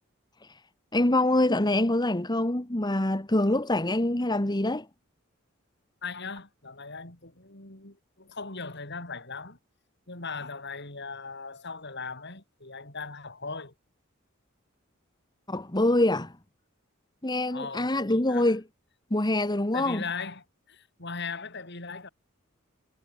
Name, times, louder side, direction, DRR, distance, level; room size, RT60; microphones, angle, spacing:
voice 1, 0.9-4.9 15.5-16.3 17.2-18.6 19.1-20.0, left 1 dB, 20° left, 1.6 m, -25 dB
voice 2, 6.0-9.6 10.1-13.7 17.5-18.5 19.7-22.1, left 4 dB, 55° left, 6.8 m, -39 dB
head